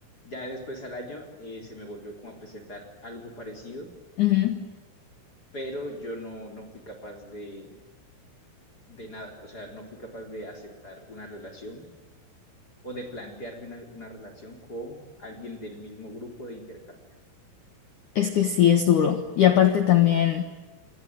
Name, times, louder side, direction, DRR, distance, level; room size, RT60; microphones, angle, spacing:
voice 1, 0.2-3.9 5.5-7.8 8.9-11.9 12.8-17.0, equal, 20° left, 5 dB, 3.5 m, -40 dB
voice 2, 4.2-4.7 18.2-20.4, left 11 dB, 80° left, 7 dB, 1.8 m, -20 dB
27.5 x 24.0 x 9.1 m, 1.2 s
omnidirectional pair, 5.9 m